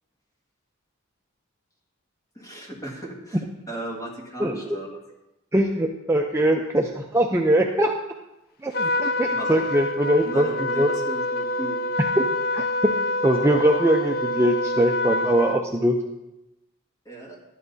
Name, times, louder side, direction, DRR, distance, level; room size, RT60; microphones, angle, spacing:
voice 1, 2.4-5.0 8.8-8.9 9.3-9.7 10.3-11.8 17.1-17.4, right 1 dB, 15° left, -2 dB, 2.0 m, -36 dB
voice 2, 4.4-4.8 5.5-7.9 8.6-10.5 10.8-10.9 12.0-12.2 12.5-12.9 13.2-16.0, right 1 dB, 15° right, 1 dB, 0.5 m, -22 dB
Trumpet, 8.7-15.6, left 1 dB, 45° left, 0.4 m, -26 dB
12.5 x 11.0 x 2.7 m, 0.94 s
head